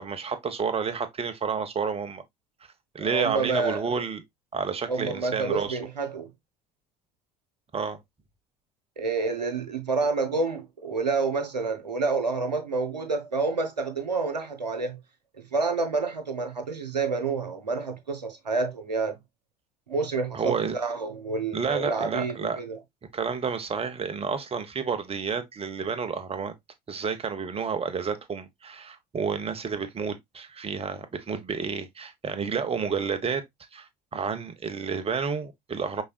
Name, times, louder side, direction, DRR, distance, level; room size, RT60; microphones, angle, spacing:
voice 1, 0.0-2.2 2.9-4.2 4.5-5.8 7.7-8.0 20.3-20.7 21.5-22.6 23.1-26.5 26.9-33.4 33.7-36.0, right 5 dB, 30° right, 1.1 m, -30 dB
voice 2, 3.0-3.8 4.9-6.3 9.0-15.0 15.5-19.2 19.9-22.8, right 4 dB, 90° right, 0.8 m, -28 dB
5.4 x 3.6 x 2.3 m
figure-of-eight pair, 65°, 21 cm